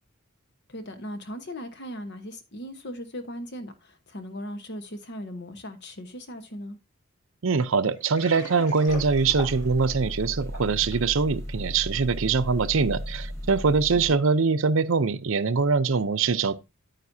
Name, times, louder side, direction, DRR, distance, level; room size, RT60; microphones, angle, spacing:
voice 1, 0.7-6.8 14.1-14.2, equal, 55° left, 1.2 m, -38 dB
voice 2, 7.4-16.5, right 4 dB, 70° right, 0.6 m, -23 dB
Water, 8.0-11.1, left 3 dB, 85° left, 6.2 m, -41 dB
sound 1, 8.9-14.1, equal, 15° left, 1.6 m, -35 dB
9.3 x 9.2 x 2.7 m
head